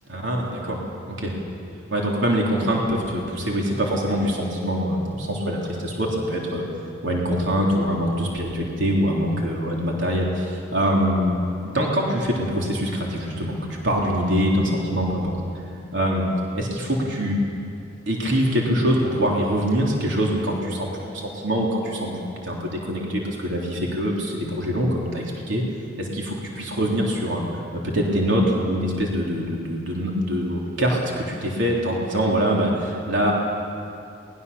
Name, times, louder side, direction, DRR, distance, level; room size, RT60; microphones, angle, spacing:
voice 1, 0.1-1.4 1.9-6.7 7.0-11.4 11.6-13.6 13.8-15.3 15.9-16.2 16.5-17.4 18.1-25.6 26.0-27.4 27.7-33.3, equal, 75° right, -2 dB, 3.5 m, -24 dB
23.5 x 20.0 x 6.9 m, 2.6 s
head